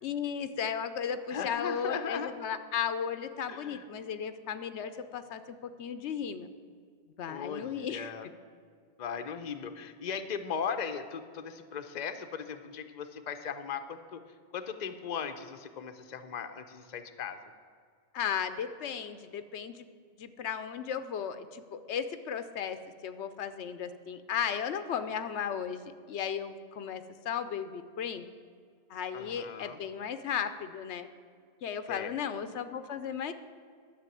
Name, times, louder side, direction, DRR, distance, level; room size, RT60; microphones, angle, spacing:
voice 1, 0.0-6.5 7.2-8.1 18.1-19.8 20.2-28.2 28.9-31.1 31.6-33.3, left 7 dB, 85° left, 11 dB, 1.0 m, -35 dB
voice 2, 1.3-2.3 3.5-3.8 7.3-8.3 9.0-14.2 14.5-17.4 29.1-29.8 31.9-32.2, left 7 dB, 45° left, 8 dB, 0.8 m, -38 dB
11.5 x 6.6 x 9.0 m, 2.1 s
omnidirectional pair, 1.1 m